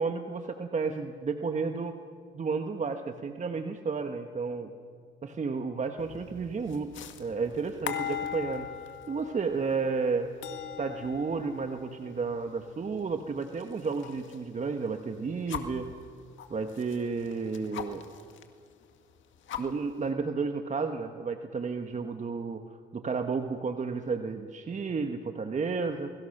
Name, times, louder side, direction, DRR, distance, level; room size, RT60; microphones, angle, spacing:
voice 1, 0.0-2.0 2.3-4.7 5.2-6.9 7.2-10.3 10.8-15.9 16.5-18.0 19.6-22.6 22.9-26.1, right 4 dB, 35° right, 6 dB, 1.3 m, -32 dB
sound 1, 6.0-14.4 14.8-15.8 16.4-18.4 18.8-18.9 19.2-20.1, left 9 dB, 75° left, 1.9 m, -41 dB
28.5 x 22.5 x 6.6 m, 2.2 s
cardioid pair, 90°, 20 cm